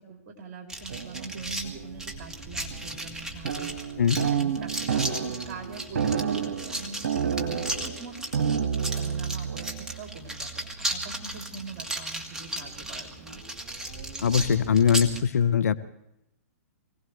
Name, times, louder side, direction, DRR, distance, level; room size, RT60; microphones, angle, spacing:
voice 1, 0.0-3.9 4.3-13.4, right 4 dB, 40° right, 3 dB, 3.4 m, -43 dB
sound 1, 0.7-15.2, right 1 dB, 5° right, 1.9 m, -36 dB
sound 2, 0.9-2.1 2.4-2.5 2.7-3.2 3.5-10.9 11.2-11.3 12.5-12.8 13.3-15.2, right 7 dB, 60° right, 1.9 m, -31 dB
voice 2, 14.2-15.8, left 7 dB, 75° left, 13 dB, 1.0 m, -22 dB
24.5 x 17.5 x 3.3 m, 0.83 s
hypercardioid pair, 120°, 8 cm